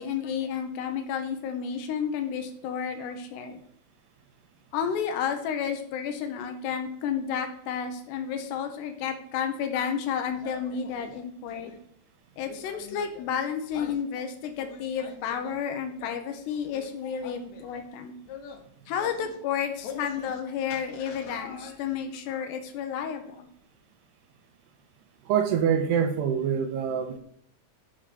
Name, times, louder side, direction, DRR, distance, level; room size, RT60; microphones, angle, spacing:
voice 1, 0.0-3.6 4.7-11.7 12.4-18.1 18.9-23.5, left 7 dB, 85° left, 6 dB, 3.2 m, -31 dB
sound 1, 10.3-11.8 12.4-13.3 13.7-14.0 14.5-15.6 16.0-16.2 16.6-16.9 17.2-17.9 18.3-18.6 18.9-19.4 19.8-20.4 20.7-22.0, left 6 dB, 65° left, 1.9 m, -45 dB
voice 2, 25.3-27.2, right 7 dB, 85° right, 7 dB, 3.2 m, -25 dB
11.5 x 6.5 x 5.2 m, 0.67 s
omnidirectional pair, 4.7 m